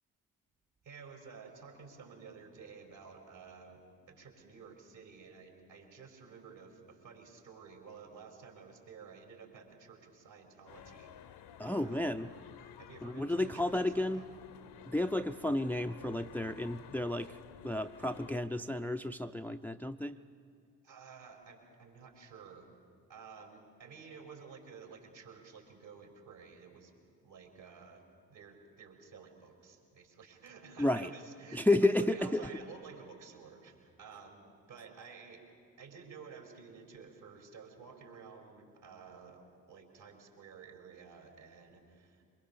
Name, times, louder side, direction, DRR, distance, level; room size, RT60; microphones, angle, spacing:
voice 1, 0.8-12.0 12.8-14.3 20.8-22.7 23.1-26.9 27.2-28.0 28.3-35.4 35.8-42.2, right 5 dB, 65° right, 2 dB, 4.8 m, -52 dB
sound 1, 10.7-18.3, left 9 dB, 60° left, 1.0 m, -53 dB
voice 2, 11.6-12.3 13.0-14.3 14.9-17.4 17.6-20.2 30.8-31.1 31.5-32.5, left 1 dB, 5° left, 8 dB, 0.6 m, -32 dB
23.5 x 21.5 x 6.9 m, 2.2 s
hypercardioid pair, 40°, 46 cm